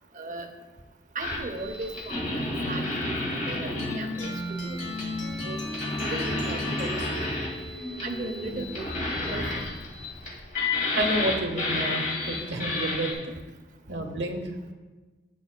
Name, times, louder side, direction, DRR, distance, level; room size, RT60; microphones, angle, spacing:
voice 1, 0.1-0.5 1.1-2.3 2.7-4.8 5.4-5.6 6.1-7.3 8.0-8.8 9.3-9.7 11.8-11.9, right 2 dB, 45° right, 6 dB, 0.7 m, -37 dB
sound 1, 1.2-13.1, left 2 dB, 45° left, 1.9 m, -31 dB
sound 2, 3.8-8.9, left 1 dB, 85° left, 1.4 m, -34 dB
voice 2, 10.9-13.3 13.9-14.5, right 1 dB, 75° right, 4 dB, 1.0 m, -30 dB
11.0 x 7.9 x 2.2 m, 1.3 s
head